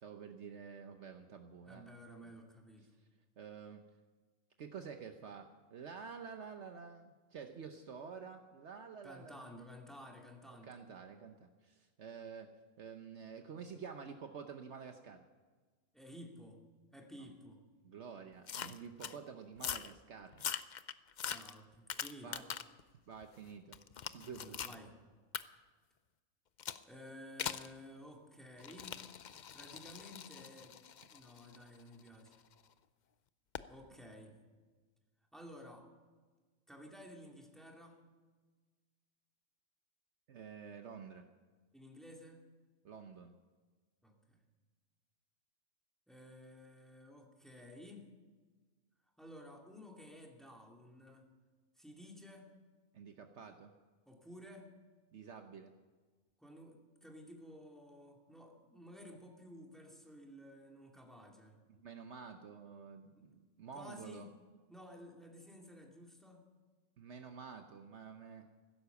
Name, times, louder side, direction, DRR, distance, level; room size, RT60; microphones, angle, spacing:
voice 1, 0.0-1.9 3.4-3.8 4.6-9.5 10.5-12.5 12.8-15.2 17.8-20.7 22.2-22.4 23.1-23.8 24.1-24.7 40.3-41.3 42.8-43.4 52.9-53.7 55.1-55.7 61.7-64.3 67.0-68.5, right 6 dB, 65° right, 6 dB, 1.1 m, -49 dB
voice 2, 1.6-2.9 9.0-10.8 15.9-16.6 16.9-17.6 21.3-22.5 24.2-25.0 26.8-29.0 29.5-30.8 31.1-32.4 33.7-34.4 35.3-35.9 36.7-38.0 41.7-42.4 44.0-44.4 46.1-48.1 49.2-51.3 51.8-52.5 54.1-54.7 56.4-61.6 63.1-63.3 63.7-64.3 64.7-66.5, equal, ahead, 1 dB, 2.2 m, -54 dB
sound 1, 18.5-19.2 19.6-19.9 20.3-22.8 23.2-24.8 25.3-25.4 26.6-26.8 27.4-27.7 28.6-32.5 33.5-33.7, left 8 dB, 55° left, 0.5 m, -43 dB
16.0 x 12.0 x 7.0 m, 1.4 s
omnidirectional pair, 1.4 m